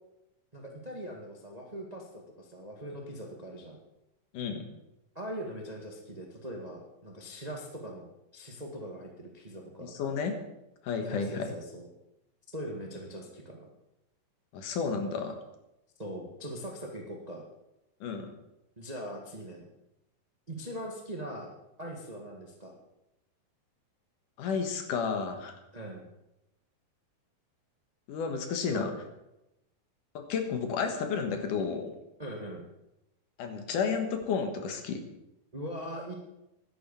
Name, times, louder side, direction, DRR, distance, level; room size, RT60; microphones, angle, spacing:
voice 1, 0.5-3.8 5.1-10.0 11.1-11.9 12.5-13.6 16.0-17.4 18.8-19.7 20.5-21.5 21.8-22.7 25.7-26.1 28.7-29.0 32.2-32.6 35.5-36.1, equal, 45° right, 0 dB, 0.5 m, -41 dB
voice 2, 4.3-4.7 9.8-10.4 10.8-11.5 14.5-15.4 18.0-18.3 24.4-25.6 28.1-28.9 30.1-31.9 33.4-35.0, left 5 dB, 65° left, 5 dB, 2.8 m, -32 dB
11.5 x 10.0 x 6.9 m, 0.90 s
omnidirectional pair, 4.2 m